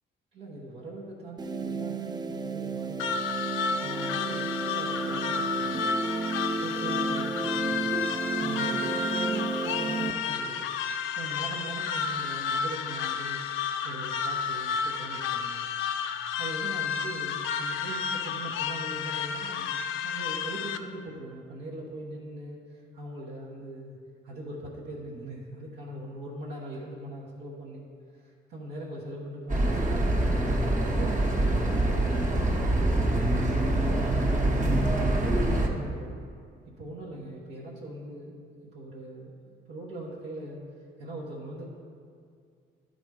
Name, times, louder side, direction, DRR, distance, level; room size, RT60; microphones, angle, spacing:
voice 1, 0.3-3.3 3.8-5.9 6.6-8.0 8.4-10.7 11.1-13.4 13.8-15.6 16.4-19.7 20.0-24.0 24.2-27.8 28.1-30.2 30.9-34.6 35.2-36.2 36.8-38.4 38.7-40.6 41.0-41.6, right 1 dB, 85° right, -6 dB, 1.2 m, -41 dB
sound 1, 1.4-10.1, right 4 dB, 20° right, 0.3 m, -32 dB
sound 2, 3.0-20.8, left 6 dB, 85° left, 0.5 m, -31 dB
sound 3, 29.5-35.7, right 1 dB, 40° right, 1.1 m, -25 dB
11.0 x 4.1 x 4.8 m, 2.2 s
cardioid pair, 90°, 20 cm